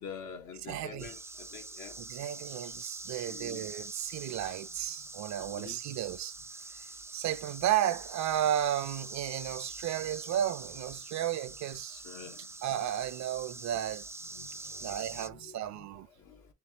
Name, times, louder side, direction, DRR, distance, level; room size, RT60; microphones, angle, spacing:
voice 1, 0.0-2.0 3.1-3.6 5.5-5.8 11.9-12.5 14.3-15.6 16.2-16.5, left 6 dB, 80° left, 1.3 m, -47 dB
voice 2, 0.6-1.1 2.0-6.4 6.7-12.0 12.6-14.1 14.8-16.1, right 11 dB, 65° right, 0.5 m, -33 dB
sound 1, 1.0-15.3, right 3 dB, 10° right, 0.3 m, -45 dB
4.5 x 3.3 x 2.9 m
cardioid pair, 90°, 30 cm